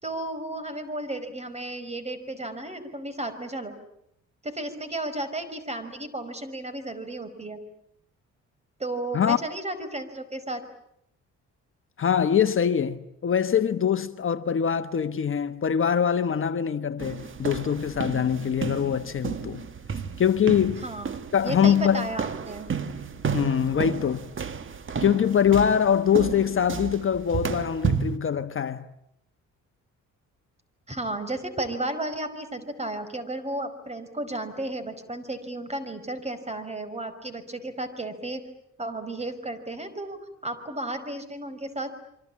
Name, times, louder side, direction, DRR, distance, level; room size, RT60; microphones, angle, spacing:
voice 1, 0.0-3.8 4.4-7.6 8.8-10.6 20.8-21.1 21.4-22.7 30.9-38.4 38.8-41.9, right 2 dB, 20° right, 5.2 m, -33 dB
voice 2, 12.0-19.6 20.2-20.8 21.3-22.1 23.3-24.3 25.0-28.9, left 8 dB, 45° left, 1.3 m, -23 dB
sound 1, 17.0-28.2, right 6 dB, 40° right, 1.9 m, -32 dB
27.5 x 24.5 x 8.6 m
cardioid pair, 90°, 30 cm